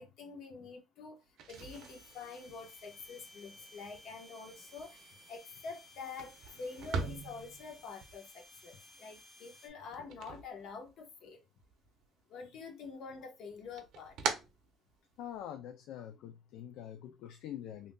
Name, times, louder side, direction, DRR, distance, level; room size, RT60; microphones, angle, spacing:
voice 1, 0.0-11.4 12.3-14.2 17.2-17.3, left 4 dB, 65° left, 1.0 m, -47 dB
sound 1, 1.3-11.3 11.6-12.4 12.8-15.4, right 5 dB, 65° right, 0.6 m, -44 dB
sound 2, 1.5-9.7, left 1 dB, 5° right, 0.8 m, -58 dB
voice 2, 15.2-17.9, left 10 dB, 80° left, 0.4 m, -45 dB
3.6 x 2.6 x 2.2 m
cardioid pair, 135°, 0 cm